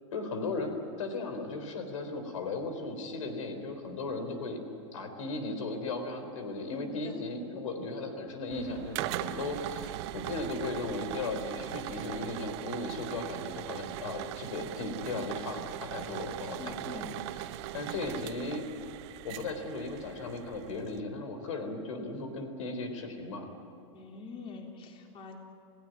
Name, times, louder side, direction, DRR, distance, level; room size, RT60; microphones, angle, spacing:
voice 1, 0.1-4.6 4.9-17.1 17.7-18.7 19.2-23.5, left 3 dB, 90° left, 7 dB, 4.0 m, -36 dB
voice 2, 6.7-7.2 16.6-17.1 23.9-25.4, left 4 dB, 35° left, 1 dB, 3.6 m, -44 dB
sound 1, 8.5-21.0, right 14 dB, 60° right, 1.1 m, -40 dB
29.5 x 16.5 x 9.4 m, 2.6 s
supercardioid pair, 135°, 16 cm